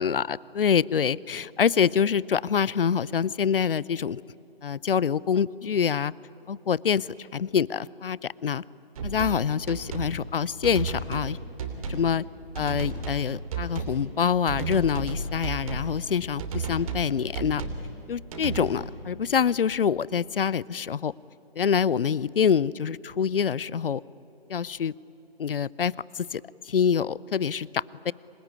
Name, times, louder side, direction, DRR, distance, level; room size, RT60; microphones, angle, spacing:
voice 1, 0.0-4.2 4.6-6.1 6.5-8.6 9.0-11.4 11.9-12.3 12.6-17.6 18.1-21.1 21.6-24.0 24.5-24.9 25.4-28.1, left 7 dB, 65° left, 23 dB, 0.6 m, -26 dB
sound 1, 9.0-9.4 9.7-10.1 10.6-11.3 11.6-12.1 12.6-13.2 13.5-14.0 14.5-15.9 16.4-17.1 17.3-17.8 18.3-18.7, right 4 dB, 35° right, 3.0 m, -33 dB
26.5 x 19.5 x 9.8 m, 2.9 s
figure-of-eight pair, 150°, 31 cm